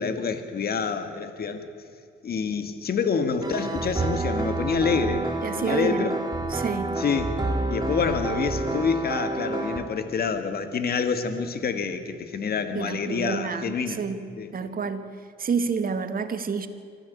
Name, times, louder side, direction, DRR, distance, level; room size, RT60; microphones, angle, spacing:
voice 1, 0.0-1.7 2.2-6.1 7.0-7.3 7.7-14.0 14.4-14.5, left 5 dB, 50° left, 8 dB, 2.0 m, -27 dB
sound 1, 3.4-9.8, right 2 dB, 20° right, 3.0 m, -29 dB
voice 2, 5.4-6.1 6.5-6.9 12.7-14.2 14.5-15.0 15.4-16.7, right 5 dB, 45° right, 9 dB, 1.9 m, -29 dB
24.5 x 15.5 x 8.5 m, 2.2 s
cardioid pair, 90°, 20 cm